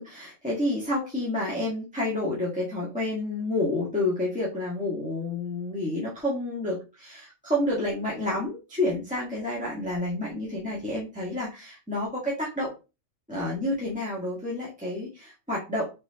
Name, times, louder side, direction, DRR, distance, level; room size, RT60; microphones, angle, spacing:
voice 1, 0.0-12.7 13.3-15.9, left 1 dB, 5° right, -7 dB, 1.4 m, -29 dB
4.4 x 4.2 x 2.8 m, 0.27 s
omnidirectional pair, 1.4 m